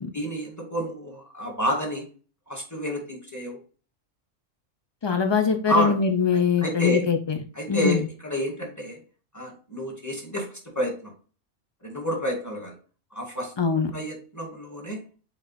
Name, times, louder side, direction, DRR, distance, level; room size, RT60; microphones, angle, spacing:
voice 1, 0.1-2.1 2.5-3.6 5.1-5.2 5.7-5.9 6.3-7.1 7.6-9.0 9.3-10.5 10.8-11.1 11.8-12.7 13.1-13.5 13.9-15.0, equal, 15° left, 1 dB, 2.1 m, -29 dB
voice 2, 5.0-7.4 7.7-8.0 13.6-13.9, left 6 dB, 45° left, 5 dB, 0.3 m, -22 dB
5.3 x 4.7 x 4.1 m, 0.39 s
omnidirectional pair, 1.3 m